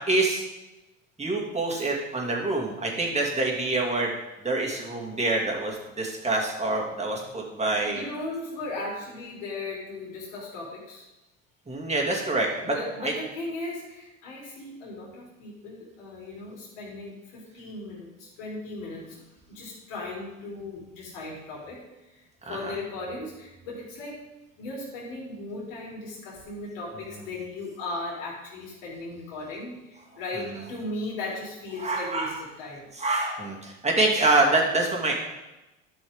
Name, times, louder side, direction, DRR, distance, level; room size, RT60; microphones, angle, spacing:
voice 1, 0.1-0.5 1.2-4.1 4.4-8.0 11.7-12.7 13.0-13.1 22.5-22.7 31.8-32.4 33.0-35.1, right 2 dB, 15° right, -1 dB, 2.5 m, -26 dB
voice 2, 7.8-11.0 12.6-22.2 22.5-24.3 24.6-32.9, left 2 dB, 75° left, -5 dB, 3.6 m, -37 dB
12.0 x 6.1 x 3.7 m, 1.0 s
hypercardioid pair, 80°, 38 cm